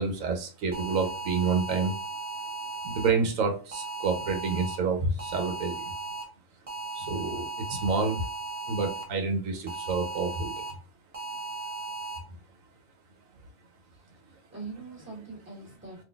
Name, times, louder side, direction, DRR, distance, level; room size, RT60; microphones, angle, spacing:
voice 1, 0.0-1.9 2.8-5.7 7.0-8.2 8.7-10.7, right 4 dB, 90° right, 5 dB, 1.1 m, -28 dB
sound 1, 0.7-3.1 3.7-4.8 5.2-6.2 6.7-9.0 9.7-10.7 11.1-12.2, right 3 dB, 35° right, 0.7 m, -36 dB
voice 2, 13.9-16.0, right 3 dB, 10° right, -4 dB, 1.3 m, -43 dB
3.8 x 2.6 x 2.3 m, 0.36 s
omnidirectional pair, 1.3 m